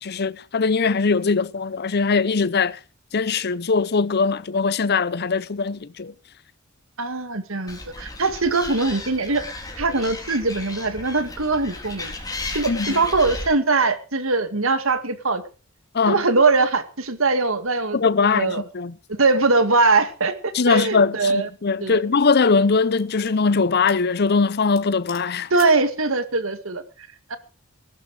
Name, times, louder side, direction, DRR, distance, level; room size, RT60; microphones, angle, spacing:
voice 1, 0.0-2.8 3.1-6.1 12.7-13.0 15.9-16.2 17.9-18.9 20.5-25.5, left 4 dB, 50° left, 0.7 m, -21 dB
voice 2, 7.0-9.4 9.8-12.1 12.5-15.4 16.1-18.6 19.1-21.5 21.8-22.0 25.5-26.8 27.3-27.4, right 3 dB, 70° right, 2.0 m, -21 dB
Animal, 7.7-13.5, left 2 dB, 20° left, 3.9 m, -34 dB
sound 1, 21.5-21.6 22.2-23.4 23.9-24.1 24.4-24.5 24.8-25.9, left 10 dB, 75° left, 3.5 m, -45 dB
19.5 x 12.0 x 4.8 m
head